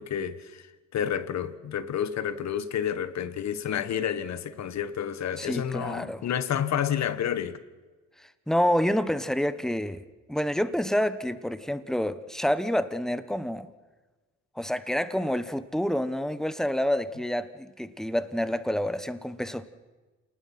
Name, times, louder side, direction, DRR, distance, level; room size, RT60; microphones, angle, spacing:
voice 1, 0.0-7.6, left 9 dB, 65° left, 1.4 m, -30 dB
voice 2, 5.4-6.2 8.5-10.0 10.3-13.7 14.6-19.7, equal, ahead, 1.2 m, -28 dB
28.0 x 20.0 x 6.0 m
cardioid pair, 90°, 30 cm